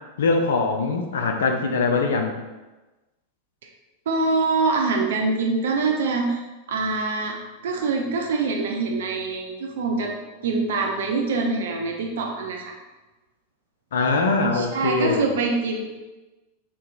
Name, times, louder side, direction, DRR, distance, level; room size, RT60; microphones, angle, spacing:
voice 1, 0.2-2.3 13.9-15.3, left 3 dB, 60° left, 3 dB, 0.3 m, -22 dB
voice 2, 4.1-7.4 7.6-10.1 10.4-12.8 14.5-15.8, right 3 dB, 60° right, 2 dB, 0.4 m, -24 dB
3.7 x 2.8 x 2.4 m, 1.1 s
figure-of-eight pair, 90°, 0 cm